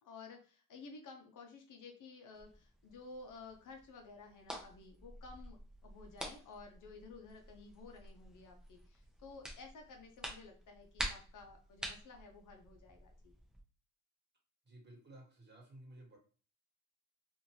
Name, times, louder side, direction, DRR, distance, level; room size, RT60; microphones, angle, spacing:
voice 1, 0.0-5.6 5.8-13.3, left 4 dB, 55° left, 3 dB, 0.8 m, -54 dB
sound 1, 2.3-13.6, equal, ahead, 0.8 m, -49 dB
voice 2, 14.6-16.2, right 1 dB, 30° right, -1 dB, 1.5 m, -55 dB
2.6 x 2.5 x 3.0 m, 0.39 s
cardioid pair, 85°, 37 cm